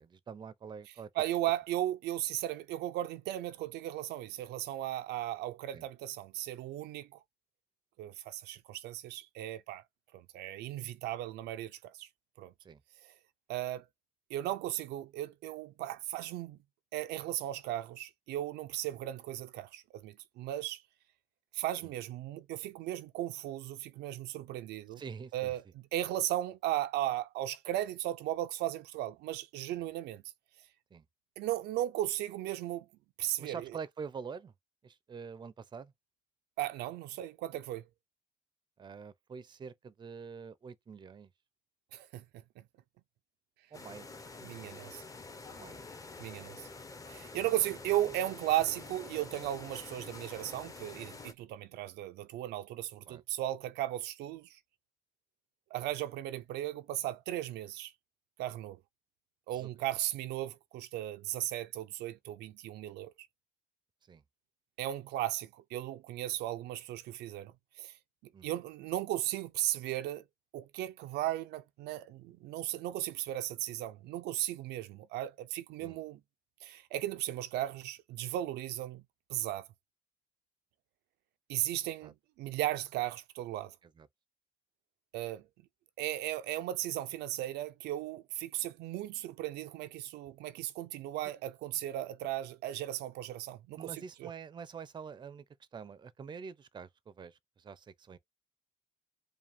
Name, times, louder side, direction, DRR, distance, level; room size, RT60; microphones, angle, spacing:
voice 1, 0.0-1.1 5.7-5.8 12.6-12.8 21.8-21.9 25.0-25.6 29.8-29.9 30.9-31.0 33.4-34.5 34.8-35.9 38.8-41.3 43.7-44.1 45.5-45.8 53.1-53.2 59.5-59.7 64.1-64.2 68.3-68.5 75.8-76.0 82.0-82.1 83.8-84.1 93.8-95.4 95.7-98.2, right 6 dB, 25° right, 0.5 m, -46 dB
voice 2, 1.2-7.2 8.0-9.8 10.1-12.1 12.4-12.5 13.0-13.1 13.5-13.8 14.3-16.6 16.9-20.8 21.5-25.0 25.3-30.2 31.4-32.9 33.2-33.7 36.6-37.8 41.9-42.2 44.4-45.0 46.2-46.7 47.1-54.6 55.7-57.9 58.4-58.8 59.5-63.1 64.8-67.9 68.4-70.2 70.5-76.2 76.6-79.0 79.3-79.7 81.5-83.7 85.1-85.5 86.0-94.3, right 14 dB, 75° right, 0.4 m, -36 dB
sound 1, 43.7-51.3, left 3 dB, 20° left, 0.7 m, -47 dB
4.9 x 2.3 x 3.5 m
cardioid pair, 110°, 17 cm